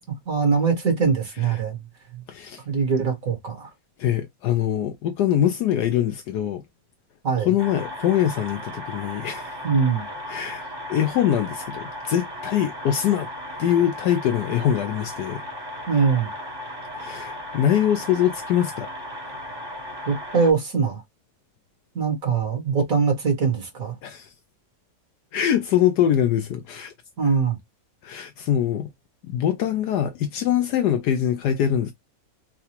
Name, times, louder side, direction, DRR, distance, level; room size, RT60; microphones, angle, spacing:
voice 1, 0.3-1.8 2.1-2.2 2.7-3.7 7.2-7.5 9.6-10.1 15.9-16.3 20.1-21.0 22.0-24.0 27.2-27.6, right 5 dB, 50° right, 1.8 m, -22 dB
voice 2, 2.3-2.6 4.0-6.6 7.4-9.5 10.3-13.3 13.6-15.4 17.0-18.9 24.0-24.3 25.3-26.9 28.0-28.9 29.2-31.9, left 10 dB, 70° left, 1.0 m, -23 dB
sound 1, 7.6-20.5, left 1 dB, 15° right, 0.9 m, -36 dB
4.7 x 2.3 x 2.8 m
omnidirectional pair, 2.0 m